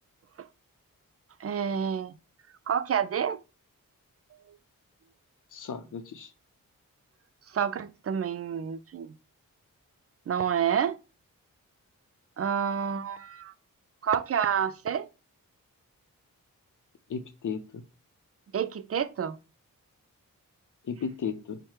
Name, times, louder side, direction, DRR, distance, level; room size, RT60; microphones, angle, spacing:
voice 1, 1.4-2.2 2.7-3.4 7.5-9.2 10.3-11.0 12.4-13.5 14.0-15.1 18.5-19.4, right 8 dB, 45° right, 0.4 m, -29 dB
voice 2, 5.5-6.3 17.1-17.8 20.8-21.6, left 6 dB, 60° left, 0.7 m, -35 dB
4.7 x 2.2 x 4.3 m
cardioid pair, 45°, 35 cm